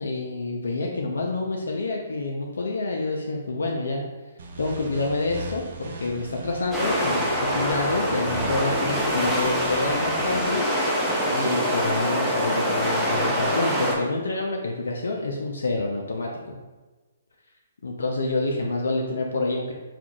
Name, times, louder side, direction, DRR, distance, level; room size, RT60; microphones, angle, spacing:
voice 1, 0.0-4.0 4.6-10.7 11.3-16.6 17.8-19.7, left 2 dB, 75° left, 0 dB, 0.5 m, -27 dB
sound 1, 4.4-10.5, right 2 dB, 60° right, 0.6 m, -39 dB
sound 2, 6.7-13.9, equal, 5° right, 0.7 m, -25 dB
5.8 x 2.4 x 2.3 m, 1.2 s
hypercardioid pair, 140°, 0 cm